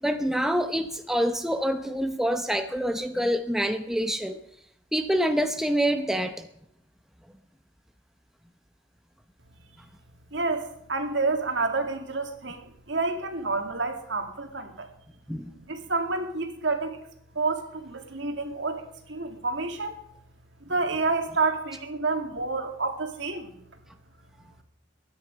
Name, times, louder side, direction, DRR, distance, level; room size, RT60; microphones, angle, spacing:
voice 1, 0.0-4.4 4.9-6.5 15.3-15.5, equal, ahead, 6 dB, 0.7 m, -26 dB
voice 2, 10.3-14.9 15.5-17.0 17.4-20.0 20.7-23.6, right 3 dB, 65° right, 5 dB, 2.1 m, -29 dB
22.0 x 9.9 x 5.2 m, 0.76 s
head